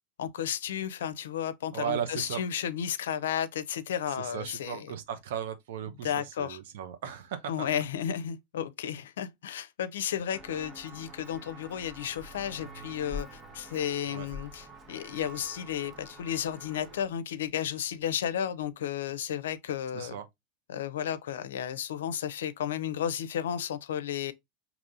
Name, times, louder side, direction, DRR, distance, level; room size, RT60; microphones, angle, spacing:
voice 1, 0.2-4.9 6.0-6.6 7.5-20.2 20.7-24.3, left 9 dB, 85° left, 0.5 m, -33 dB
voice 2, 1.7-2.4 4.1-7.7 14.1-14.3 19.9-20.3, right 9 dB, 75° right, 0.7 m, -36 dB
Walk footsteps, 10.3-17.0, equal, 30° right, 0.9 m, -46 dB
5.3 x 2.9 x 2.5 m
hypercardioid pair, 110°, 0 cm